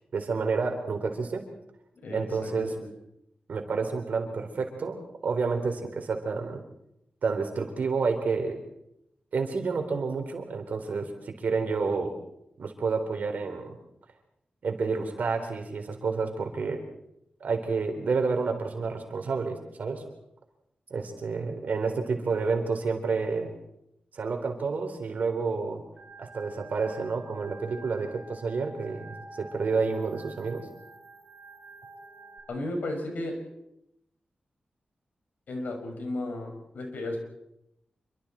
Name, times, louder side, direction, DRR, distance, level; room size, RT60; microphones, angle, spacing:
voice 1, 0.1-1.4 2.1-2.7 3.5-6.6 7.2-8.6 9.3-12.2 12.6-13.8 14.6-16.8 17.4-20.0 20.9-23.5 24.1-25.8 26.2-30.7, right 4 dB, 70° right, 5 dB, 3.9 m, -29 dB
voice 2, 2.0-2.9 32.5-33.4 35.5-37.2, left 1 dB, 90° left, 3 dB, 6.0 m, -34 dB
Organ, 26.0-32.4, right 2 dB, 25° right, 7.3 m, -48 dB
27.5 x 24.5 x 4.4 m, 0.81 s
wide cardioid pair, 150°, 3 cm